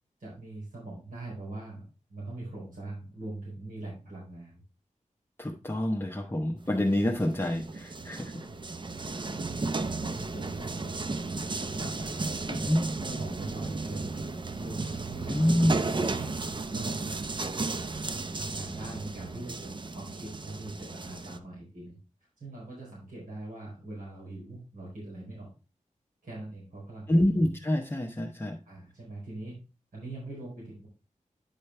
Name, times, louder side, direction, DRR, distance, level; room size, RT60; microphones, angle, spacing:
voice 1, 0.2-1.8 2.1-4.6 6.3-6.4 8.3-9.7 10.0-14.2 14.6-15.4 15.7-16.4 16.7-17.2 17.7-22.0 22.4-25.5 26.2-27.2 28.6-29.6 29.9-30.9, right 2 dB, 90° right, -6 dB, 4.5 m, -42 dB
voice 2, 5.4-8.3 12.7-12.8 15.3-15.8 27.1-28.5, left 1 dB, 15° left, 0 dB, 0.9 m, -26 dB
sound 1, 6.6-21.4, right 3 dB, 35° right, 0.6 m, -34 dB
9.9 x 5.2 x 3.3 m, 0.31 s
wide cardioid pair, 90°, 13 cm